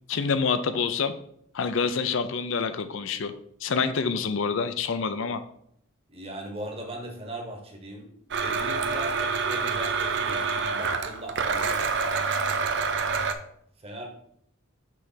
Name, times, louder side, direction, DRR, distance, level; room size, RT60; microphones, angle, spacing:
voice 1, 0.1-1.1 1.5-3.3 3.6-5.4, left 5 dB, 60° left, 11 dB, 0.5 m, -27 dB
voice 2, 6.1-8.1 8.4-12.7 13.8-14.1, right 1 dB, 25° right, 1 dB, 1.1 m, -39 dB
Domestic sounds home sounds, 8.3-13.3, right 5 dB, 55° right, 0.5 m, -27 dB
6.1 x 3.3 x 5.7 m, 0.69 s
head